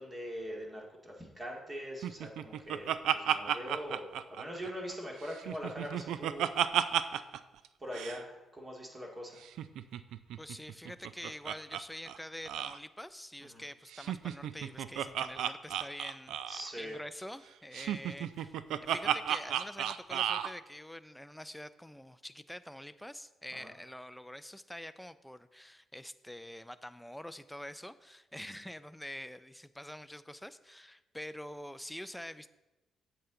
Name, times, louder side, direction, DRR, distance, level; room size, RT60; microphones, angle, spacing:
voice 1, 0.0-6.5 7.8-9.4 13.4-13.6 16.5-16.9 23.5-23.7 28.5-28.6, equal, 25° right, -1 dB, 2.0 m, -42 dB
Laughter, 2.0-5.0 5.3-7.4 7.6-7.7 7.9-8.2 9.4-11.8 12.1-12.2 12.5-12.8 13.9-16.7 17.7-20.5, right 10 dB, 80° right, 0.3 m, -33 dB
voice 2, 10.4-18.5 18.8-32.5, left 1 dB, 5° left, 12 dB, 0.4 m, -46 dB
8.0 x 7.8 x 3.8 m, 1.0 s
cardioid pair, 90°, 0 cm